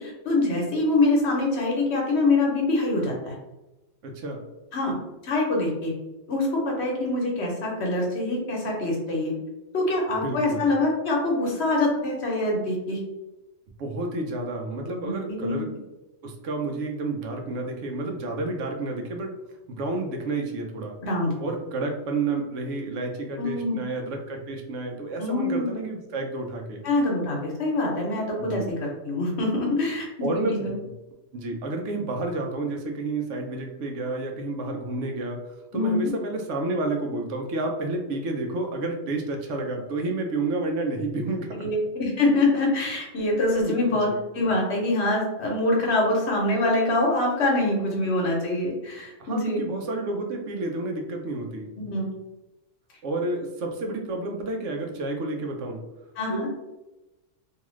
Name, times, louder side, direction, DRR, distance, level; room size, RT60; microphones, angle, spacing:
voice 1, 0.0-3.3 4.7-4.9 5.2-5.9 6.3-9.3 9.7-13.0 15.0-15.7 21.0-21.3 23.4-23.8 25.2-25.7 26.8-28.6 29.0-30.1 30.3-30.7 35.7-36.1 41.6-44.1 44.3-49.7 51.8-52.1 56.2-56.5, left 2 dB, 65° left, -1 dB, 1.0 m, -24 dB
voice 2, 4.0-4.4 10.2-10.7 13.8-15.7 16.2-19.3 19.7-21.0 21.4-26.8 28.4-28.7 30.2-30.9 31.3-35.5 35.7-41.7 43.6-43.8 44.1-44.2 49.2-51.7 53.0-55.8 56.3-56.5, right 2 dB, 75° right, 2 dB, 0.9 m, -30 dB
2.7 x 2.3 x 3.0 m, 1.0 s
omnidirectional pair, 1.3 m